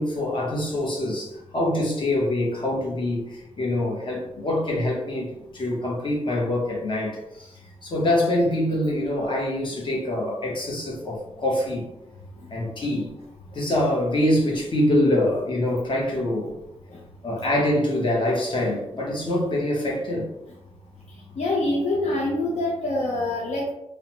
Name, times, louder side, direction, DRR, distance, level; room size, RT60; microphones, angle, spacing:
voice 1, 0.0-7.5 7.8-11.8 12.5-13.1 13.5-16.5 17.2-20.3, left 1 dB, 45° left, -3 dB, 0.8 m, -25 dB
voice 2, 21.4-23.7, left 2 dB, 70° left, -3 dB, 0.5 m, -25 dB
3.0 x 2.0 x 2.9 m, 0.87 s
wide cardioid pair, 115°, 12 cm